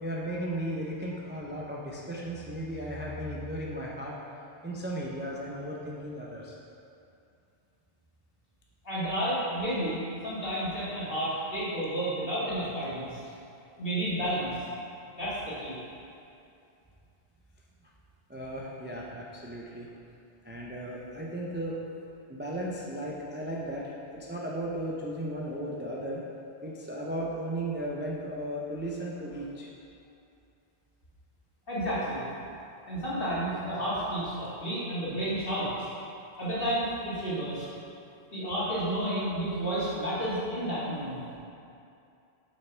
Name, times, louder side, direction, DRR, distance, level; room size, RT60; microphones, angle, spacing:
voice 1, 0.0-4.2 4.6-6.6 18.3-19.9 20.4-21.8 22.3-26.2 26.6-29.7, right 1 dB, 15° right, -4 dB, 0.4 m, -35 dB
voice 2, 8.8-13.2 13.8-14.6 15.1-15.8 31.7-32.2 32.9-35.9 36.4-37.6 38.3-41.2, right 1 dB, 55° left, -9 dB, 2.1 m, -31 dB
7.3 x 5.9 x 3.3 m, 2.6 s
omnidirectional pair, 1.2 m